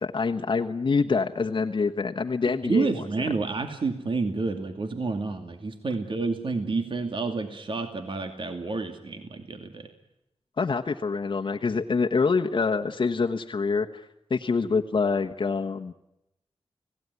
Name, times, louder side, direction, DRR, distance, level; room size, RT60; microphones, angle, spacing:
voice 1, 0.0-2.9 10.6-15.9, left 4 dB, 50° left, 4 dB, 1.2 m, -26 dB
voice 2, 2.6-9.9, right 3 dB, 55° right, 6 dB, 2.5 m, -29 dB
30.0 x 18.5 x 9.6 m, 0.88 s
wide cardioid pair, 140°, 11 cm